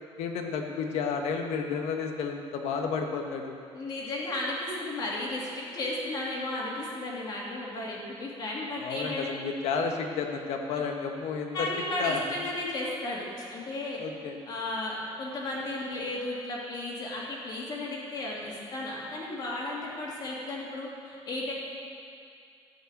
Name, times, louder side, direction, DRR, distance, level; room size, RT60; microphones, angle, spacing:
voice 1, 0.2-3.5 8.8-11.7 12.0-12.4 14.0-14.4, left 5 dB, 80° left, 3 dB, 1.3 m, -31 dB
voice 2, 3.7-9.3 11.5-14.0 14.5-21.5, left 2 dB, 40° left, -4 dB, 2.4 m, -34 dB
13.5 x 5.5 x 8.5 m, 2.5 s
cardioid pair, 180°, 11 cm